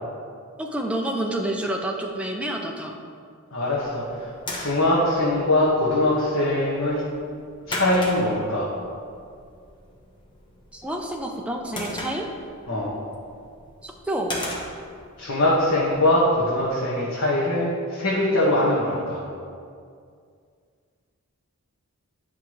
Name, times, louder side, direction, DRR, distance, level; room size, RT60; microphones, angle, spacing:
voice 1, 0.6-2.9 10.7-12.3 13.8-14.3, right 1 dB, 5° right, 0 dB, 0.5 m, -28 dB
voice 2, 3.5-4.3 4.5-7.0 7.7-8.7 12.7-12.9 15.2-19.2, left 1 dB, 75° left, -8 dB, 1.5 m, -22 dB
sound 1, 3.7-16.7, left 1 dB, 20° left, 1.0 m, -39 dB
10.5 x 5.8 x 3.2 m, 2.2 s
head